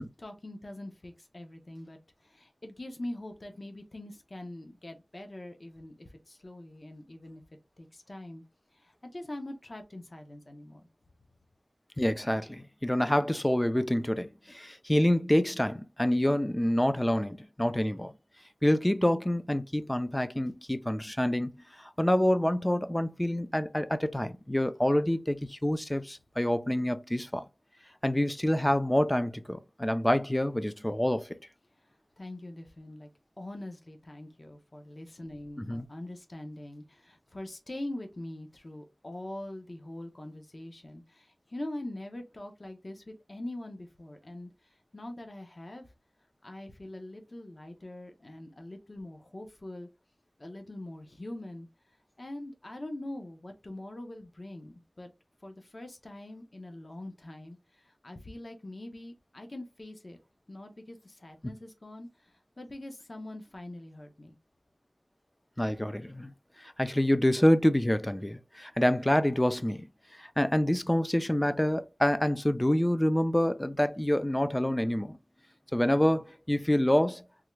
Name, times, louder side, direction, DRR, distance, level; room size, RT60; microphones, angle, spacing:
voice 1, 0.0-7.4 7.8-8.4 8.7-10.9 32.2-33.1 33.4-45.9 46.4-49.9 50.4-51.7 52.2-55.1 55.4-60.2 60.5-64.4, left 1 dB, 45° left, 0.7 m, -43 dB
voice 2, 12.0-18.1 18.6-21.5 21.8-27.4 28.0-31.4 35.6-35.9 65.6-66.3 66.6-69.9 70.2-75.2 75.7-77.2, left 1 dB, 15° left, 0.4 m, -27 dB
3.5 x 2.2 x 3.1 m
wide cardioid pair, 70°, 0 cm